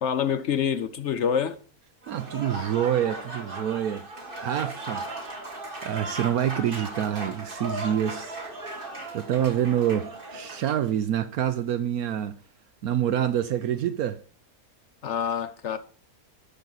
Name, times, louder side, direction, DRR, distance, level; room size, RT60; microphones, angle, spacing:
voice 1, 0.0-1.6 15.0-15.8, left 8 dB, 60° left, 0.8 m, -26 dB
Applause / Crowd, 2.0-10.9, right 2 dB, 35° right, 2.0 m, -37 dB
voice 2, 2.1-4.1 4.4-5.1 5.8-8.4 8.7-12.4 12.8-14.2, right 10 dB, 70° right, 1.1 m, -27 dB
12.0 x 6.4 x 4.0 m
omnidirectional pair, 1.7 m